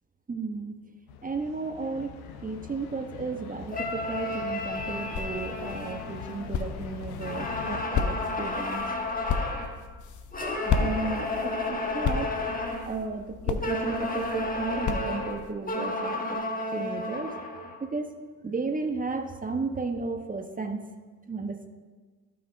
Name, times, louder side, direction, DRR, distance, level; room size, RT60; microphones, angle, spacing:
voice 1, 0.3-0.8 1.2-8.9 10.4-12.3 12.8-17.4 17.8-18.2 18.4-20.8 21.3-21.7, right 4 dB, 20° right, 6 dB, 1.0 m, -34 dB
sound 1, 1.1-7.9, left 7 dB, 70° left, 0.9 m, -43 dB
sound 2, 3.7-6.8 7.2-9.8 10.3-13.0 13.6-17.8, left 2 dB, 20° left, 1.4 m, -32 dB
sound 3, 4.6-15.5, left 6 dB, 45° left, 0.9 m, -34 dB
15.5 x 5.8 x 2.6 m, 1.5 s
figure-of-eight pair, 55°, 44 cm